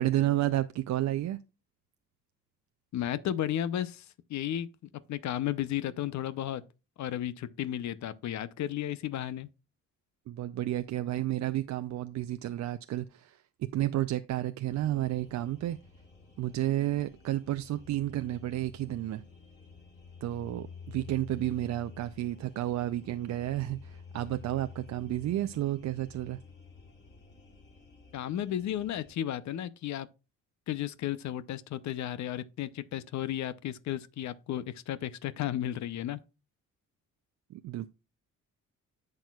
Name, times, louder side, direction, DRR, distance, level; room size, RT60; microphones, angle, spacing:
voice 1, 0.0-1.4 10.3-15.8 16.4-19.2 20.2-26.4 37.5-37.9, right 14 dB, 65° right, 0.5 m, -31 dB
voice 2, 2.9-4.7 5.1-6.6 7.0-9.5 28.1-30.1 30.7-36.2, left 11 dB, 70° left, 0.7 m, -33 dB
sound 1, 14.7-29.1, left 5 dB, 35° left, 2.5 m, -51 dB
10.5 x 6.4 x 2.3 m
cardioid pair, 90°, 30 cm